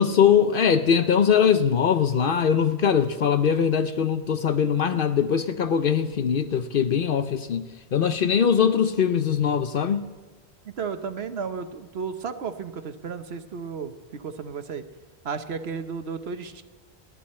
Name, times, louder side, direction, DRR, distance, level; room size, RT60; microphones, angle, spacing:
voice 1, 0.0-10.0, left 7 dB, 60° left, 10 dB, 0.8 m, -21 dB
voice 2, 10.6-14.8 15.2-16.6, right 5 dB, 70° right, 9 dB, 1.2 m, -33 dB
29.0 x 11.0 x 4.3 m, 1.3 s
omnidirectional pair, 1.1 m